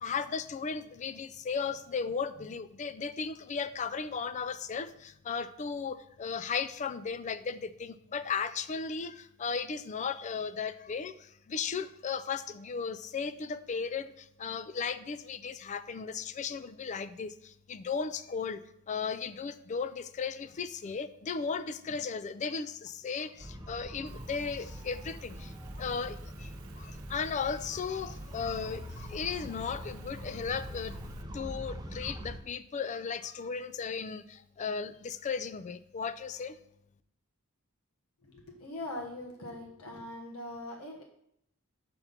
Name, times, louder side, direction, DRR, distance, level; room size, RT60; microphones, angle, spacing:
voice 1, 0.0-25.5 25.8-31.0 31.3-36.6, left 5 dB, 35° left, 14 dB, 0.3 m, -36 dB
sound 1, 23.4-32.4, equal, 20° right, 0.6 m, -43 dB
Rain, 24.1-31.2, right 4 dB, 65° right, 0.6 m, -55 dB
voice 2, 38.2-41.0, left 1 dB, 80° left, 0 dB, 1.2 m, -41 dB
5.8 x 5.2 x 5.7 m, 0.74 s
head